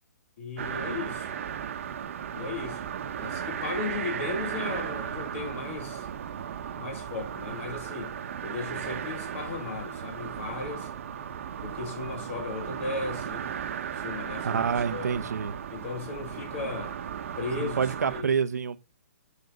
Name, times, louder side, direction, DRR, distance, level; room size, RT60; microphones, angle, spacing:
voice 1, 0.4-1.3 2.3-2.8 3.2-6.1 6.7-8.1 8.4-10.9 11.6-13.5 13.9-14.6 14.9-15.3 15.7-17.0 17.4-18.3, left 4 dB, 50° left, 2.6 m, -36 dB
sound 1, 0.6-18.2, right 8 dB, 50° right, 1.1 m, -36 dB
voice 2, 14.4-15.5 17.6-18.8, right 6 dB, 75° right, 0.9 m, -27 dB
9.7 x 6.4 x 3.8 m
hypercardioid pair, 155°, 9 cm